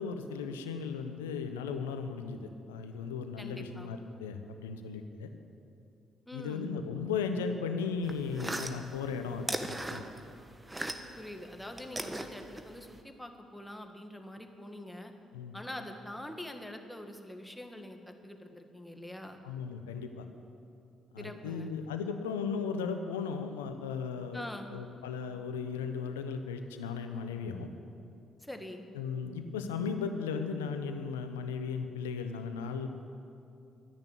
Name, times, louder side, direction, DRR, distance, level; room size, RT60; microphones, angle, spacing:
voice 1, 0.0-5.3 6.3-10.0 15.3-15.6 19.4-20.3 21.1-24.4 24.7-27.7 28.9-32.9, left 5 dB, 85° left, 7 dB, 0.9 m, -36 dB
voice 2, 3.4-3.9 6.3-6.7 11.2-15.1 15.5-19.4 21.2-21.7 24.3-24.7 28.4-28.9, left 1 dB, 5° left, 5 dB, 1.8 m, -44 dB
sound 1, 8.0-11.3 11.5-13.0, right 1 dB, 15° right, 1.3 m, -38 dB
12.5 x 10.5 x 8.4 m, 2.5 s
hypercardioid pair, 45°, 0 cm